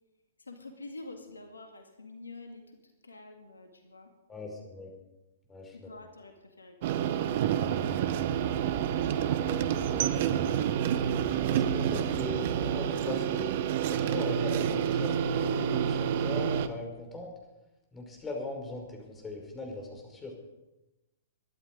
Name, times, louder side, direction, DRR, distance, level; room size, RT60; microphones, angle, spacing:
voice 1, 0.4-2.6 3.0-4.1 5.7-7.0, left 2 dB, 80° left, 5 dB, 2.1 m, -47 dB
voice 2, 4.3-4.9 5.5-5.9 9.2-13.5 13.9-17.3 17.9-20.4, left 2 dB, 15° left, 2 dB, 5.2 m, -40 dB
sound 1, 6.8-16.7, right 9 dB, 50° right, 1.1 m, -28 dB
sound 2, 7.6-12.8, right 4 dB, 25° right, 1.9 m, -43 dB
23.5 x 11.5 x 5.2 m, 1.0 s
figure-of-eight pair, 110°, 0 cm